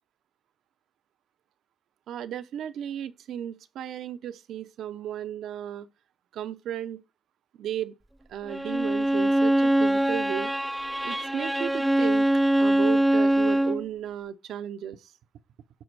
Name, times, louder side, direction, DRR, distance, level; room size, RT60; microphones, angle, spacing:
voice 1, 2.1-5.9 6.3-7.0 7.6-7.9 8.3-10.5 11.0-12.3 12.6-15.1, right 10 dB, 90° right, 0.6 m, -35 dB
Bowed string instrument, 8.5-13.8, right 1 dB, 10° right, 0.4 m, -23 dB
11.5 x 5.1 x 4.7 m
cardioid pair, 80°, 0 cm